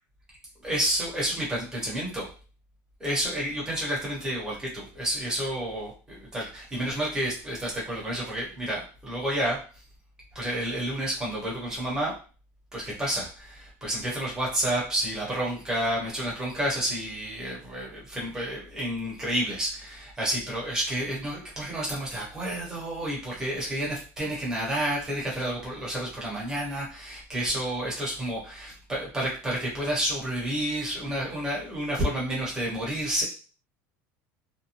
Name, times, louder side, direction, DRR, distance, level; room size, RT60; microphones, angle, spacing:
voice 1, 0.6-2.3 3.0-9.6 10.3-12.1 12.7-33.2, right 1 dB, 10° right, -5 dB, 1.0 m, -30 dB
2.6 x 2.2 x 2.8 m, 0.37 s
cardioid pair, 170°, 7 cm